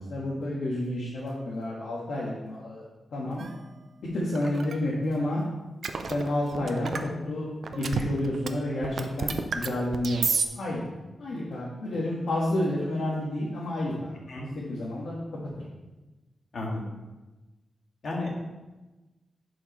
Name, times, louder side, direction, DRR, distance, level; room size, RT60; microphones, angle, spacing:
voice 1, 0.0-2.9 3.1-3.4 4.1-5.4 6.1-10.2 10.5-10.8 11.2-14.2 14.5-15.2 15.6-15.7, left 1 dB, 75° left, -6 dB, 1.5 m, -30 dB
sound 1, 3.4-3.5 4.4-4.8 5.8-7.1 7.6-8.5 8.7-10.5, right 5 dB, 60° right, 0.5 m, -30 dB
voice 2, 16.5-17.0 18.0-18.3, left 2 dB, 55° left, -3 dB, 1.9 m, -33 dB
11.0 x 5.0 x 3.1 m, 1.1 s
wide cardioid pair, 145°, 0 cm